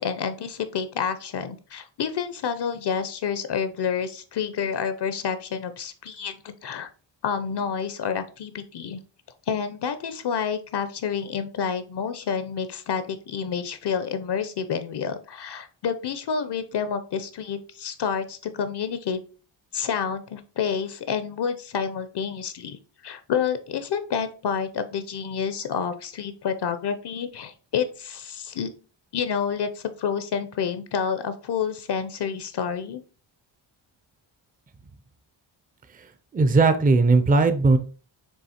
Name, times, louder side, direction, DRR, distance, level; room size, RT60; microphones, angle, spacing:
voice 1, 0.0-6.9 7.2-9.0 9.5-19.2 19.7-22.8 23.0-28.7 29.1-33.0, left 7 dB, 55° left, 11 dB, 0.6 m, -29 dB
voice 2, 36.3-37.8, right 3 dB, 20° right, 9 dB, 0.4 m, -18 dB
7.2 x 3.1 x 4.2 m, 0.37 s
wide cardioid pair, 175°, 48 cm